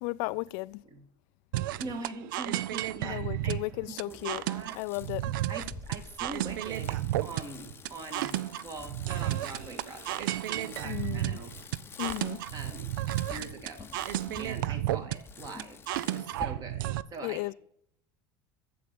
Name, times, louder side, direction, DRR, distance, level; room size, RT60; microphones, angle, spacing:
voice 1, 0.0-0.8 3.0-4.4 4.8-5.3 10.8-11.4 12.0-12.4 17.2-17.5, left 23 dB, 65° left, 0.4 m, -34 dB
sound 1, 1.5-17.0, right 14 dB, 90° right, 0.4 m, -33 dB
voice 2, 1.8-3.6 3.9-4.8 5.5-11.5 12.5-12.9 13.3-13.9 14.4-16.9 17.1-17.5, right 3 dB, 35° right, 2.0 m, -43 dB
Bicycle, 4.1-16.4, left 5 dB, 20° left, 0.7 m, -48 dB
7.8 x 7.6 x 6.9 m
supercardioid pair, 115°, 11 cm